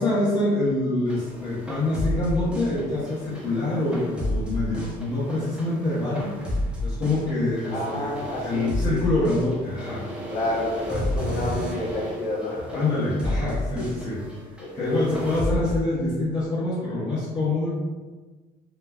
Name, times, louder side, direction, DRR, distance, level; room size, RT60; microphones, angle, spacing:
voice 1, 0.0-6.3 6.8-10.0 12.7-14.2 14.7-17.7, left 2 dB, 30° left, -11 dB, 0.9 m, -25 dB
sound 1, 1.1-15.8, left 1 dB, 5° right, 0.6 m, -31 dB
voice 2, 7.7-9.0 10.3-12.8 14.6-14.9, left 1 dB, 60° left, -4 dB, 0.8 m, -29 dB
3.0 x 2.2 x 2.2 m, 1.3 s
cardioid pair, 110°, 17 cm